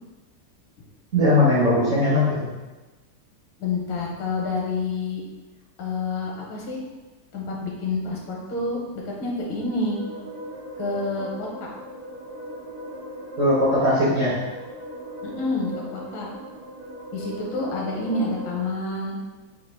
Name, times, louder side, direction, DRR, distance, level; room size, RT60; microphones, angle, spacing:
voice 1, 1.1-2.5 13.4-14.4, left 1 dB, 55° right, -7 dB, 0.9 m, -19 dB
voice 2, 3.6-5.2 5.8-6.8 7.3-8.8 9.0-10.0 10.8-11.7 15.2-16.3 17.1-19.2, left 3 dB, 75° left, -2 dB, 1.7 m, -28 dB
sound 1, 9.3-18.6, equal, 90° right, 0.5 m, -39 dB
4.0 x 2.8 x 4.4 m, 1.2 s
omnidirectional pair, 2.3 m